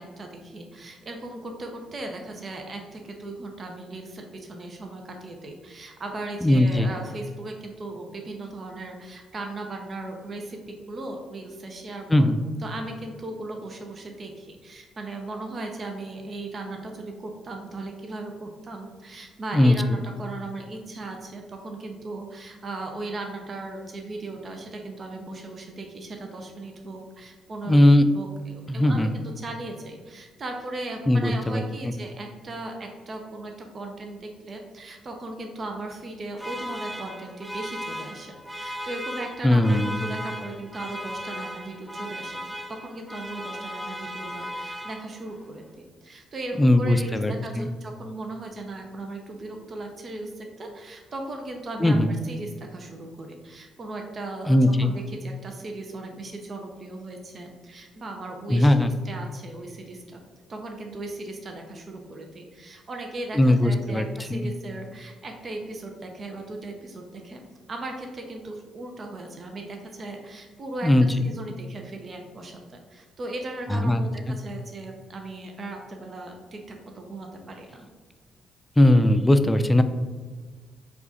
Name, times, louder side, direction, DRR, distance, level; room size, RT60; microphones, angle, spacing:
voice 1, 0.0-12.3 12.6-27.8 28.1-42.4 42.7-45.7 46.0-60.2 60.5-67.4 67.7-70.9 71.2-72.6 72.9-77.9, right 2 dB, 45° right, 3 dB, 0.6 m, -37 dB
voice 2, 6.4-6.9 12.1-12.3 19.5-20.0 27.7-28.0 28.7-29.1 31.1-31.6 39.4-39.9 46.6-47.7 51.8-52.1 54.5-54.9 58.5-58.9 63.3-64.0 64.3-64.5 70.8-71.1 73.7-74.0 74.3-74.4 78.8-79.8, left 1 dB, 15° left, 9 dB, 0.4 m, -19 dB
sound 1, 36.4-45.4, equal, 10° right, 0.7 m, -36 dB
4.7 x 2.5 x 3.9 m, 1.4 s
hypercardioid pair, 50°, 0 cm